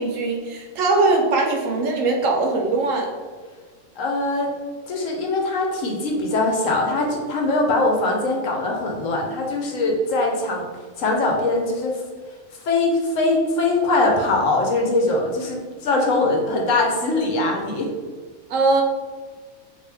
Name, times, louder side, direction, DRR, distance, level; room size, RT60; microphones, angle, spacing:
voice 1, 0.0-3.1 18.5-18.8, right 3 dB, 75° right, 1 dB, 0.9 m, -21 dB
voice 2, 4.0-4.5 4.9-10.6 11.0-12.0 12.6-17.9, left 2 dB, 70° left, 0 dB, 1.0 m, -22 dB
3.3 x 2.6 x 3.3 m, 1.5 s
omnidirectional pair, 1.5 m